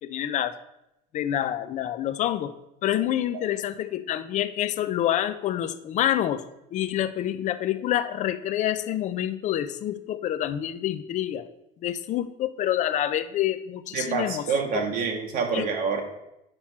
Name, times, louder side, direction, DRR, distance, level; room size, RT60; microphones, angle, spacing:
voice 1, 0.0-0.6 1.1-2.5 2.8-6.4 6.7-11.5 11.8-14.5 14.7-14.8 15.5-15.7, left 11 dB, 40° left, 13 dB, 0.5 m, -27 dB
voice 2, 13.9-16.0, right 5 dB, 50° right, 2 dB, 1.0 m, -27 dB
8.9 x 5.9 x 4.4 m, 0.87 s
cardioid pair, 160°, 19 cm